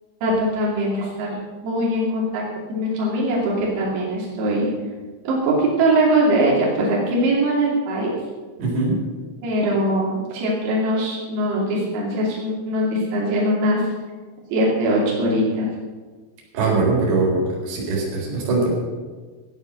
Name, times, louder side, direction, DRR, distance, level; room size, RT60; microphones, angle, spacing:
voice 1, 0.2-1.4 1.6-2.4 2.7-4.7 5.3-8.1 9.4-13.9 14.5-15.7, right 1 dB, 90° right, -5 dB, 5.5 m, -21 dB
voice 2, 8.6-9.0 16.5-18.7, right 3 dB, 60° right, -3 dB, 6.1 m, -21 dB
16.0 x 9.8 x 6.4 m, 1.4 s
omnidirectional pair, 6.0 m